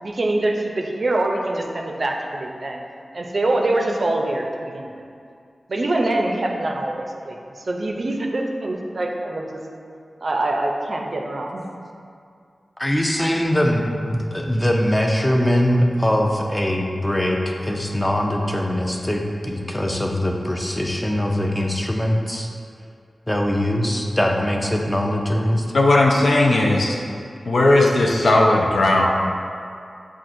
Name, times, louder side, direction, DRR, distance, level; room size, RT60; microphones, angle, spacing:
voice 1, 0.0-2.8 3.1-4.9 5.7-9.6 10.2-11.6, right 2 dB, 55° right, 1 dB, 0.4 m, -24 dB
voice 2, 12.8-22.5 23.3-25.6, equal, 15° left, 1 dB, 0.4 m, -22 dB
voice 3, 25.7-27.0 27.5-29.1, left 2 dB, 75° left, -1 dB, 0.5 m, -16 dB
7.2 x 2.4 x 2.6 m, 2.4 s
wide cardioid pair, 80°, 0 cm